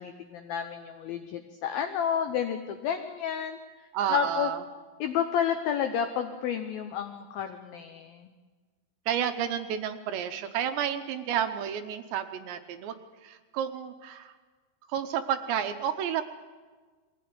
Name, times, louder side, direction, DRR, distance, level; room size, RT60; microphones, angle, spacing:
voice 1, 0.0-3.6 4.1-4.5 5.0-8.3, left 8 dB, 85° left, 7 dB, 2.1 m, -30 dB
voice 2, 3.9-4.6 9.1-13.0 13.2-14.3 14.9-16.2, right 9 dB, 75° right, 9 dB, 2.9 m, -31 dB
22.0 x 16.0 x 9.4 m, 1.4 s
omnidirectional pair, 5.5 m